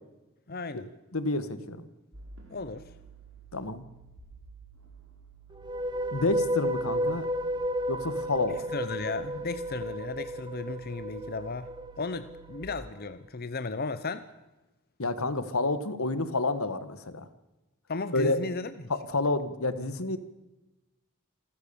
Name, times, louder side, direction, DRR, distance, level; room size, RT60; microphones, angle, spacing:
voice 1, 0.5-0.9 2.5-2.8 8.7-11.7 12.0-14.2 17.9-18.7, left 3 dB, 45° left, 12 dB, 0.9 m, -35 dB
voice 2, 1.1-1.9 3.5-3.8 6.1-7.2 7.9-8.6 15.0-17.3 18.1-18.4 18.9-20.2, left 2 dB, 80° left, 13 dB, 1.6 m, -29 dB
sound 1, 2.1-12.6, right 6 dB, 75° right, 5.3 m, -53 dB
sound 2, 5.5-12.8, equal, 20° right, 1.0 m, -33 dB
27.5 x 14.5 x 7.0 m, 1.1 s
head